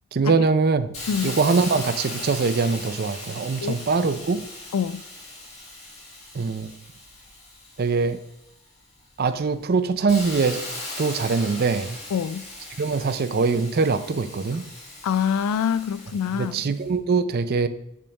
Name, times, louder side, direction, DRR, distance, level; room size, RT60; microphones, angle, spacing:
voice 1, 0.1-0.9 1.2-4.4 6.3-6.7 7.8-8.2 9.2-10.6 11.0-12.0 12.8-14.7 16.3-17.7, right 4 dB, 45° right, 0.4 m, -23 dB
Hiss, 0.9-8.5 9.0-16.8, left 2 dB, 30° left, 1.6 m, -38 dB
voice 2, 12.1-12.4 15.0-16.6, left 7 dB, 90° left, 0.3 m, -25 dB
8.5 x 3.6 x 5.2 m
head